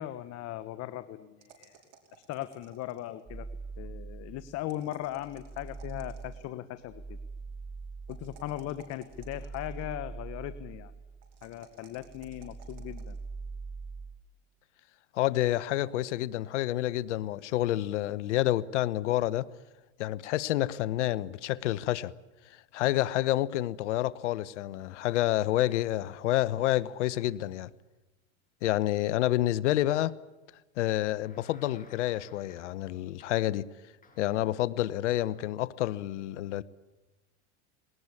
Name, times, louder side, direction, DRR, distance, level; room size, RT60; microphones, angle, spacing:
voice 1, 0.0-1.8 2.3-3.5 3.8-7.2 8.1-10.9 11.4-13.2, left 14 dB, 45° left, 1.2 m, -38 dB
sound 1, 1.4-3.2 4.6-6.5 8.1-9.9 11.2-13.2, right 7 dB, 55° right, 5.5 m, -57 dB
sound 2, 3.3-4.7 5.1-11.6 11.9-14.2, right 4 dB, 10° right, 0.9 m, -43 dB
voice 2, 15.1-19.5 20.0-22.1 22.7-27.7 28.6-30.2 30.8-33.7 34.2-36.6, left 14 dB, 80° left, 1.0 m, -28 dB
sound 3, 30.9-32.9 33.2-33.6 34.0-34.6 35.2-35.6, left 4 dB, 25° left, 5.9 m, -59 dB
20.5 x 19.0 x 9.8 m
supercardioid pair, 110°, 35 cm